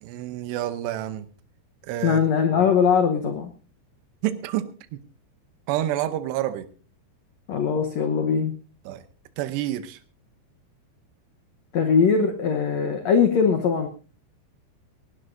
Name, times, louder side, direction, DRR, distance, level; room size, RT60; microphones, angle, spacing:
voice 1, 0.0-1.3 1.9-2.2 4.2-4.7 5.7-6.7 8.9-9.0 9.4-10.0, right 13 dB, 85° right, 11 dB, 3.0 m, -28 dB
voice 2, 2.0-3.5 7.5-8.6 11.7-13.9, left 6 dB, 90° left, 6 dB, 1.5 m, -21 dB
19.5 x 18.0 x 2.6 m, 0.35 s
omnidirectional pair, 4.8 m